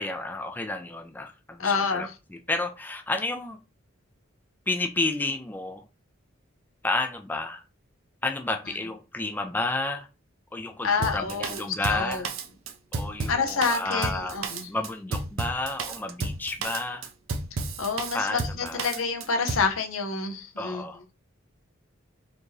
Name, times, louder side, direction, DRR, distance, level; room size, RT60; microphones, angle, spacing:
voice 1, 0.0-3.6 4.7-5.8 6.8-7.6 8.2-10.1 10.5-12.3 12.9-17.1 18.1-18.9 20.6-21.0, left 2 dB, 10° left, 0.3 m, -31 dB
voice 2, 1.6-2.1 10.8-11.6 11.9-12.2 13.3-14.7 17.8-20.8, left 5 dB, 90° left, 0.9 m, -28 dB
Drum kit, 11.0-19.7, right 3 dB, 80° right, 0.6 m, -32 dB
4.3 x 2.8 x 3.1 m
head